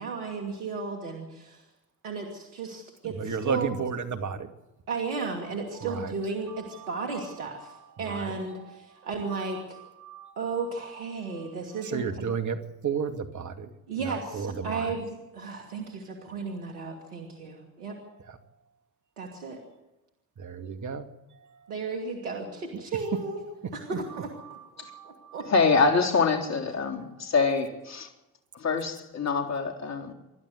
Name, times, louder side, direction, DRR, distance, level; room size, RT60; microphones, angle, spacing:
voice 1, 0.0-1.6 2.0-3.7 4.9-9.8 10.4-12.3 13.9-18.0 19.2-19.6 21.7-23.4 23.7-24.3 25.3-25.4, right 4 dB, 90° right, 2.8 m, -34 dB
voice 2, 3.0-4.5 5.7-6.1 6.5-6.9 7.6-8.8 9.3-10.6 11.3-11.5 11.8-12.6 12.8-13.7 14.0-15.0 18.3-18.4 20.4-21.1 21.4-21.6 22.7-22.9 23.9-24.2 24.9-25.5, right 6 dB, 40° right, 2.4 m, -34 dB
voice 3, 25.5-28.1 28.5-30.1, left 4 dB, 35° left, 3.8 m, -25 dB
28.0 x 12.0 x 8.0 m
hypercardioid pair, 65°, 44 cm